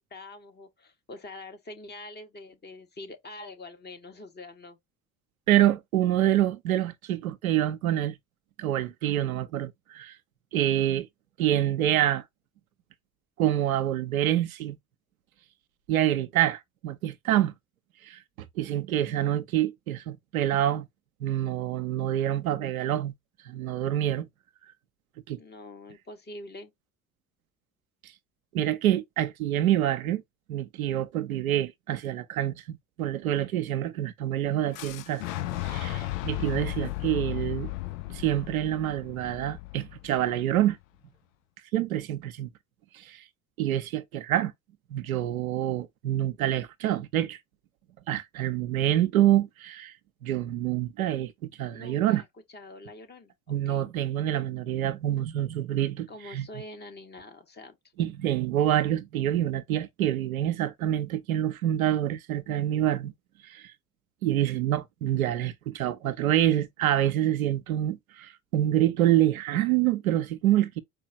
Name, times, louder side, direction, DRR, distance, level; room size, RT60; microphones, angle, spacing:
voice 1, 0.0-4.8 25.4-26.7 51.7-52.3 52.5-53.9 56.1-57.8, left 2 dB, 25° left, 1.1 m, -45 dB
voice 2, 5.5-8.2 8.6-10.2 10.5-11.1 11.4-12.2 13.4-14.8 15.9-17.5 18.0-20.9 21.2-23.1 23.5-24.3 25.3-25.4 28.5-30.2 30.5-35.2 35.6-37.7 38.1-40.8 41.7-42.5 42.9-43.2 43.6-44.5 44.9-47.4 48.1-49.9 50.2-52.2 53.5-56.5 58.0-63.1 63.4-63.7 64.2-70.8, right 12 dB, 80° right, 0.5 m, -26 dB
Fire / Explosion, 34.7-40.6, left 16 dB, 70° left, 0.5 m, -35 dB
4.5 x 2.4 x 2.8 m
figure-of-eight pair, 50°, 42 cm